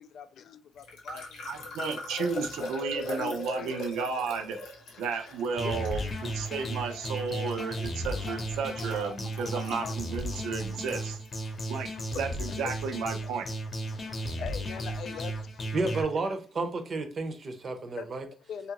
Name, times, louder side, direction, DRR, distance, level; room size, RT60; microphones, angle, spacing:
voice 1, 0.0-2.4 2.9-3.9 4.9-5.0 5.6-6.6 7.3-7.6 8.1-8.4 9.6-10.0 11.5-12.7 13.2-13.3 13.9-16.1 17.9-18.1 18.4-18.7, left 7 dB, 70° left, 0.3 m, -43 dB
sound 1, 0.8-11.6, left 2 dB, 90° left, 0.8 m, -41 dB
voice 2, 1.5-4.6 5.0-11.2 11.7-13.5, right 5 dB, 90° right, 0.5 m, -33 dB
sound 2, 5.5-16.0, equal, 45° left, 0.7 m, -35 dB
voice 3, 15.7-18.2, right 3 dB, 45° right, 0.6 m, -31 dB
2.8 x 2.4 x 2.8 m
cardioid pair, 85°, 0 cm